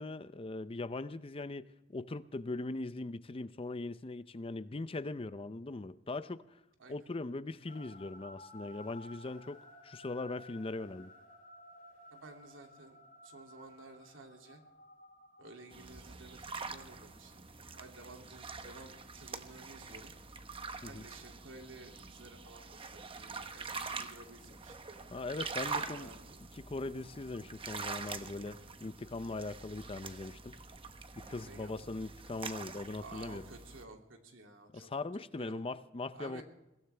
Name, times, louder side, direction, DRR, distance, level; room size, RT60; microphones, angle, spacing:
voice 1, 0.0-6.4 6.9-11.1 20.8-21.0 25.1-26.1 26.5-30.6 31.2-33.4 34.7-36.4, left 2 dB, 30° left, 0.6 m, -40 dB
sound 1, 7.7-17.1, left 1 dB, 45° left, 5.4 m, -56 dB
voice 2, 12.1-13.0 13.2-14.6 15.4-17.4 17.7-20.1 20.8-24.8 25.8-26.4 31.4-31.9 33.0-34.9 35.4-35.6 36.1-36.4, right 2 dB, 85° right, 2.6 m, -53 dB
sound 2, 15.7-33.8, right 4 dB, 30° right, 1.0 m, -45 dB
23.0 x 16.5 x 3.4 m
head